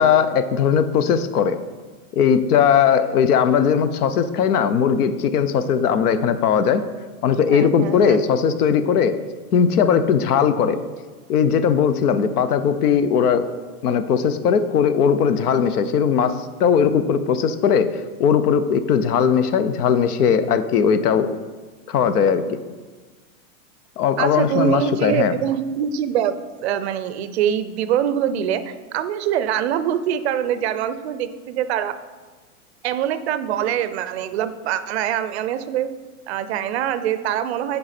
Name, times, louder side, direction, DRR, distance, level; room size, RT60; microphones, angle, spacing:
voice 1, 0.0-1.6 2.1-6.8 7.2-9.1 9.5-10.8 11.3-13.5 13.8-17.9 18.2-21.3 21.9-22.6 24.0-25.3, left 7 dB, 85° left, 12 dB, 0.8 m, -18 dB
voice 2, 7.5-8.2 24.2-26.4 26.6-31.9 32.8-35.9 36.3-37.8, right 10 dB, 50° right, 12 dB, 0.4 m, -24 dB
7.7 x 4.7 x 4.2 m, 1.4 s
supercardioid pair, 150°, 45 cm